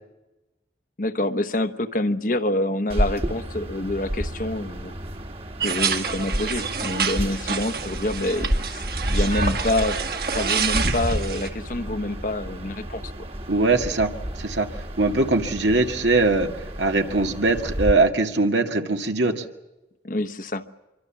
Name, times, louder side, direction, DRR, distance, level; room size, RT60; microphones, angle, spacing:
voice 1, 1.0-4.9 5.6-8.8 9.1-13.0 20.0-20.7, left 1 dB, 45° left, 11 dB, 1.0 m, -27 dB
sound 1, 2.9-17.9, equal, 30° right, 1.5 m, -32 dB
sound 2, 5.6-11.5, right 4 dB, 55° right, 2.0 m, -27 dB
voice 2, 13.5-14.1 14.4-14.7 15.0-16.5 16.8-19.4, right 3 dB, 85° right, 4 dB, 2.0 m, -21 dB
25.5 x 24.0 x 7.3 m, 1.0 s
head